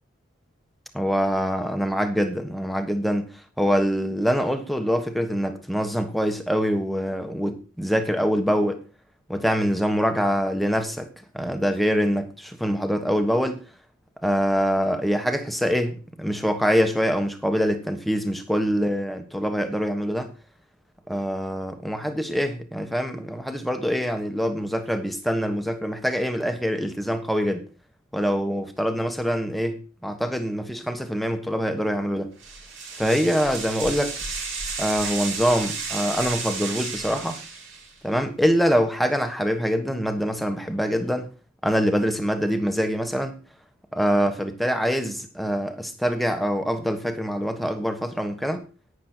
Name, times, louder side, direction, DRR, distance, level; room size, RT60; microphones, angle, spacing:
voice 1, 0.9-3.3 3.6-8.8 9.3-11.1 11.3-13.6 14.2-20.3 21.1-27.7 28.1-32.3 33.0-34.1 34.8-37.4 38.0-41.3 41.6-43.3 43.9-48.7, equal, ahead, 1.4 m, -24 dB
sound 1, 32.4-38.0, right 4 dB, 70° right, 5.4 m, -32 dB
11.0 x 9.5 x 4.5 m
head